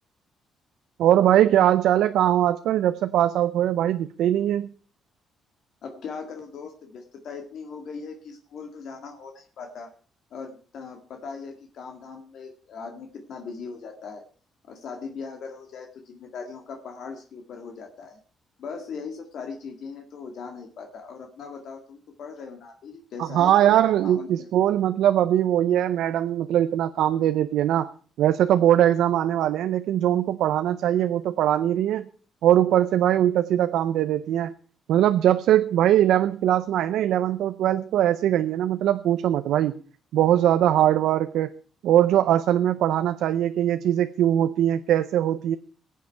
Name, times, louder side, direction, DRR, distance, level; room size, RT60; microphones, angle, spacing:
voice 1, 1.0-4.7 23.2-27.9 28.2-32.1 32.4-34.5 34.9-39.8 40.1-41.5 41.8-45.6, right 11 dB, 85° right, 10 dB, 0.6 m, -21 dB
voice 2, 5.8-9.9 10.3-14.2 14.7-18.2 18.6-23.8 24.0-24.5, left 5 dB, 70° left, 4 dB, 1.8 m, -39 dB
21.0 x 7.6 x 4.5 m, 0.41 s
cardioid pair, 90°, 0 cm